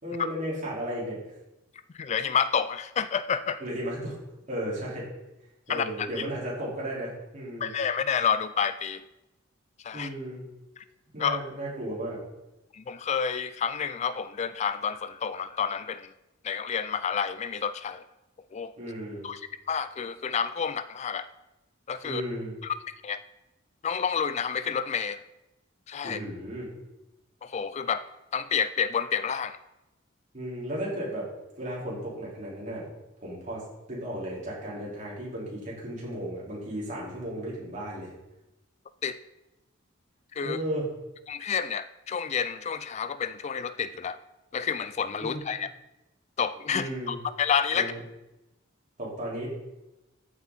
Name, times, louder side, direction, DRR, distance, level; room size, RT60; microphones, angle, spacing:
voice 1, 0.0-1.2 3.6-4.2 4.5-5.1 5.7-7.7 9.9-10.4 11.1-12.2 18.8-19.3 22.0-22.5 26.0-26.7 30.3-31.3 31.6-32.9 33.2-38.1 40.4-40.9 45.2-45.4 46.7-47.2 47.7-48.0 49.0-49.5, right 1 dB, 40° right, -6 dB, 4.6 m, -34 dB
voice 2, 1.9-3.6 5.7-6.2 7.6-9.0 9.8-10.1 10.8-10.9 11.2-11.4 12.7-16.1 16.4-18.0 18.5-18.7 19.2-19.4 19.7-21.3 21.9-22.2 22.6-22.7 23.0-23.2 23.8-25.2 25.9-26.2 27.4-28.0 28.3-29.6 39.0-39.2 40.3-40.6 41.3-44.2 44.5-45.7 46.4-47.9, left 7 dB, 35° left, 14 dB, 0.3 m, -29 dB
14.0 x 7.9 x 4.3 m, 0.97 s
head